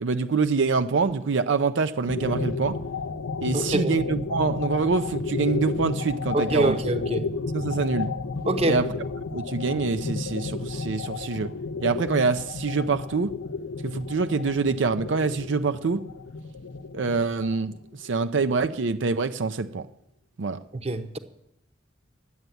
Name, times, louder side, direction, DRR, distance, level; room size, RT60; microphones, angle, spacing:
voice 1, 0.0-2.8 3.4-6.8 7.5-8.1 8.7-8.9 9.3-11.5 11.8-13.3 13.8-16.0 16.9-17.7 18.0-19.9 20.4-20.6, right 4 dB, 75° right, 0.5 m, -25 dB
sound 1, 2.1-18.2, left 4 dB, 75° left, 0.6 m, -32 dB
voice 2, 3.5-3.9 6.3-7.3 8.4-8.8 20.8-21.2, right 2 dB, 35° right, 0.8 m, -25 dB
11.0 x 8.0 x 9.2 m
head